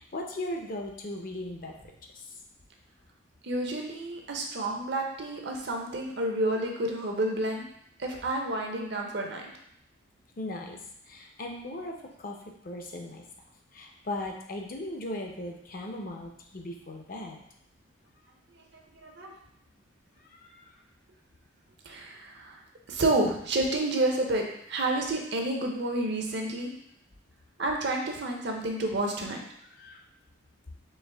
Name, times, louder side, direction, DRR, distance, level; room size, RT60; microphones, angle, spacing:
voice 1, 0.0-1.7 10.4-10.8 11.1-12.4 12.6-13.2 13.7-17.4 20.4-20.7 29.8-30.0, left 1 dB, 45° left, 1 dB, 0.6 m, -37 dB
voice 2, 3.4-7.6 8.0-9.4 19.0-19.3 21.8-22.6 22.9-26.7 27.6-29.4, right 2 dB, 55° right, 1 dB, 0.7 m, -30 dB
4.5 x 3.0 x 3.4 m, 0.72 s
head